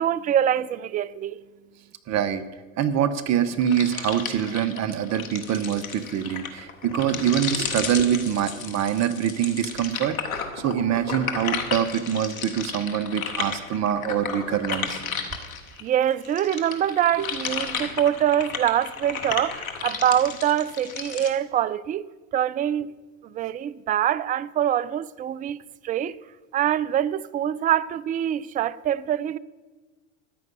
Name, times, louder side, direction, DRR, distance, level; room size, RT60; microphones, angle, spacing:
voice 1, 0.0-1.4 15.8-22.1 22.3-22.9 23.3-26.2 26.5-29.4, right 10 dB, 20° right, 0.4 m, -24 dB
voice 2, 2.1-2.4 2.8-10.2 10.6-15.0 17.2-17.3, right 9 dB, 40° right, 1.0 m, -25 dB
sound 1, 3.6-15.8 16.2-21.3, left 6 dB, 90° left, 1.5 m, -33 dB
13.5 x 9.4 x 5.4 m
hypercardioid pair, 85°, 40 cm